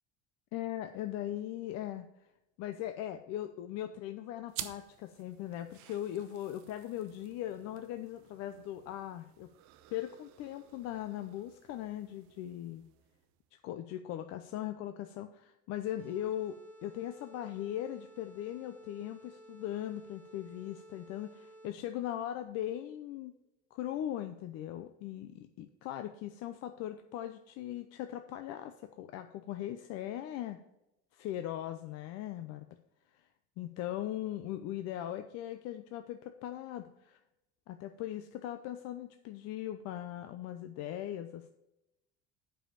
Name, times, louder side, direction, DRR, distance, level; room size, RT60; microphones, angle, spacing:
voice 1, 0.5-2.1 2.6-9.5 9.9-12.8 13.6-23.3 23.7-30.6 31.1-32.7 33.6-37.2 37.7-41.5, left 12 dB, 60° left, 7 dB, 0.7 m, -39 dB
sound 1, 4.5-13.5, right 13 dB, 70° right, 0.9 m, -51 dB
sound 2, 16.0-21.9, right 1 dB, 5° left, 1.8 m, -55 dB
7.7 x 5.6 x 6.9 m, 0.90 s
cardioid pair, 150°, 29 cm